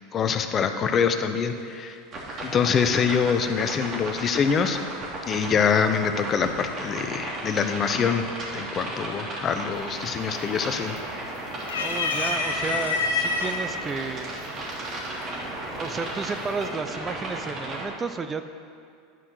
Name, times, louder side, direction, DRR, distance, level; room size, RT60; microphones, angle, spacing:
voice 1, 0.1-2.0 2.4-4.8 5.3-8.3 8.5-10.9, left 6 dB, 35° left, 8 dB, 0.8 m, -24 dB
sound 1, 2.1-17.9, right 1 dB, 40° right, 2.8 m, -35 dB
sound 2, 9.8-10.2 10.5-11.2 11.6-13.5 14.4-14.5 15.8-16.2, left 4 dB, 90° left, 1.3 m, -27 dB
voice 2, 11.7-14.3 15.6-18.4, right 4 dB, 25° right, 9 dB, 0.5 m, -32 dB
11.5 x 5.9 x 6.3 m, 2.3 s
hypercardioid pair, 100°, 0 cm